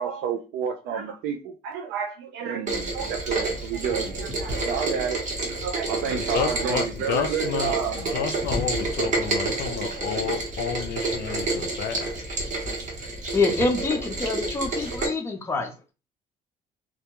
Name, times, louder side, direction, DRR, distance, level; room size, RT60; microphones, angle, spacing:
voice 1, 0.0-8.3, right 7 dB, 90° right, 0.4 m, -30 dB
Rain, 2.7-15.1, right 2 dB, 45° right, 1.0 m, -29 dB
voice 2, 6.1-12.1, left 8 dB, 70° left, 0.4 m, -30 dB
voice 3, 13.3-15.9, left 3 dB, 15° left, 0.5 m, -26 dB
2.2 x 2.1 x 2.9 m
cardioid pair, 110°, 17 cm